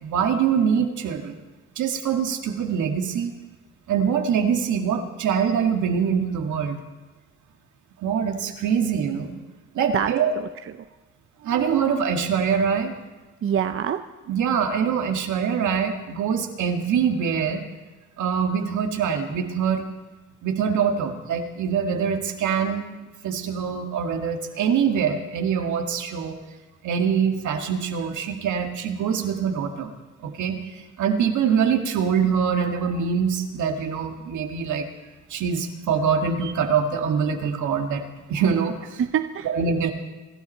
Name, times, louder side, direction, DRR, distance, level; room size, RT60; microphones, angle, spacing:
voice 1, 0.0-1.4 1.8-3.3 3.9-6.8 8.0-9.3 9.7-10.4 11.4-12.9 14.3-17.6 18.2-19.9 20.4-22.8 23.2-26.4 26.8-29.9 30.2-30.6 31.0-34.9 35.3-39.0 39.5-39.9, right 7 dB, 75° right, 3 dB, 2.0 m, -24 dB
voice 2, 9.9-10.8 13.4-14.0 39.0-39.5, right 8 dB, 45° right, 8 dB, 0.7 m, -26 dB
25.5 x 12.5 x 4.5 m, 1.2 s
cardioid pair, 90°, 30 cm